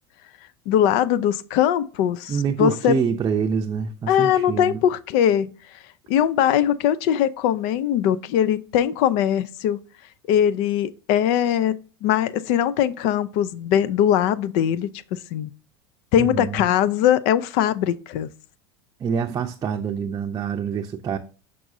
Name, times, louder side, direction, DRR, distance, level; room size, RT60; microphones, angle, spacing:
voice 1, 0.7-3.0 4.1-5.5 6.1-9.8 10.3-11.7 12.0-15.5 16.1-18.3, left 10 dB, 60° left, 0.5 m, -21 dB
voice 2, 2.3-4.8 16.2-16.6 19.0-21.2, right 6 dB, 30° right, 0.6 m, -26 dB
6.1 x 6.0 x 2.6 m
supercardioid pair, 105°, 13 cm